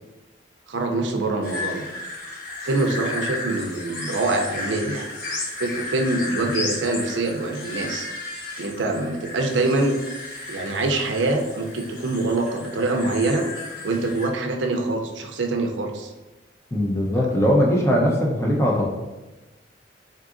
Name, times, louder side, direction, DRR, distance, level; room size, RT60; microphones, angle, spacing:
voice 1, 0.7-1.8 2.6-5.1 5.6-8.1 8.6-10.0 10.5-13.5 13.8-16.1, right 2 dB, 85° right, 3 dB, 0.5 m, -24 dB
sound 1, 1.4-14.3, left 3 dB, 50° left, 1.1 m, -34 dB
voice 2, 16.7-18.8, equal, 15° left, -3 dB, 0.6 m, -20 dB
3.9 x 3.7 x 2.5 m, 1.1 s
head